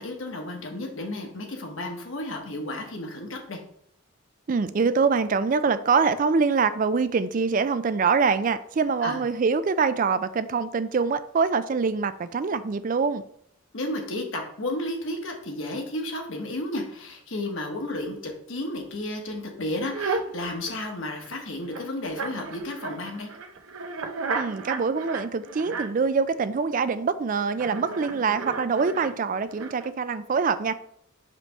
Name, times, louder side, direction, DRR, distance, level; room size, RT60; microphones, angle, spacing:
voice 1, 0.0-3.6 9.0-9.2 13.7-23.3, left 1 dB, 65° left, 2 dB, 1.2 m, -32 dB
voice 2, 4.5-13.2 24.4-30.7, right 5 dB, 40° right, 13 dB, 0.3 m, -24 dB
sound 1, 19.9-21.3 21.6-26.1 27.5-29.9, right 4 dB, 80° right, 0.7 m, -34 dB
5.0 x 3.3 x 5.6 m, 0.68 s
head